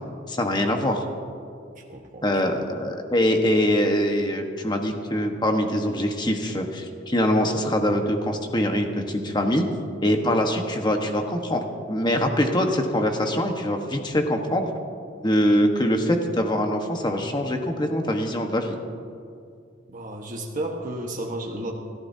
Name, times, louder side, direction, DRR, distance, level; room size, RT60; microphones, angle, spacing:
voice 1, 0.3-1.1 2.2-9.6 10.0-11.6 11.9-14.7 15.2-18.7, equal, 25° left, 3 dB, 1.3 m, -23 dB
voice 2, 1.8-2.6 19.9-21.7, right 1 dB, 45° right, 0 dB, 1.3 m, -33 dB
28.5 x 14.0 x 2.8 m, 2.3 s
head